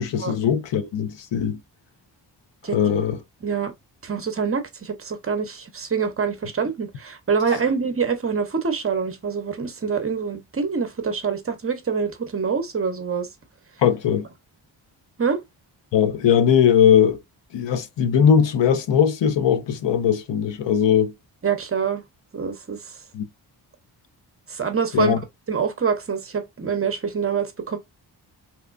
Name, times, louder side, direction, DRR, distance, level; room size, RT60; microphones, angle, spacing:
voice 1, 0.0-1.6 2.7-3.2 13.8-14.3 15.9-17.2 17.5-21.1 23.1-23.3 24.9-25.2, left 8 dB, 80° left, 0.7 m, -19 dB
voice 2, 4.0-13.3 15.2-15.4 21.4-22.0 22.3-22.9 24.5-25.2 25.5-27.8, right 6 dB, 30° right, 0.7 m, -25 dB
3.5 x 3.0 x 2.4 m
wide cardioid pair, 130°, 42 cm